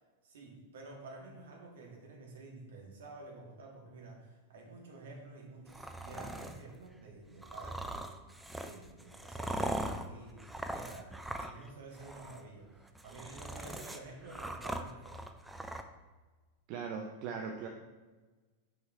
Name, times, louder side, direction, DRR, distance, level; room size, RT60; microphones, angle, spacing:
voice 1, 0.2-8.2 8.6-15.2, right 3 dB, 60° right, -1 dB, 1.6 m, -50 dB
sound 1, 5.7-6.6 7.4-11.7 11.9-12.4 12.9-15.8, right 1 dB, 5° right, 0.5 m, -40 dB
voice 2, 16.7-17.7, right 6 dB, 45° right, 2 dB, 0.6 m, -39 dB
6.3 x 4.7 x 4.6 m, 1.3 s
figure-of-eight pair, 90°, 0 cm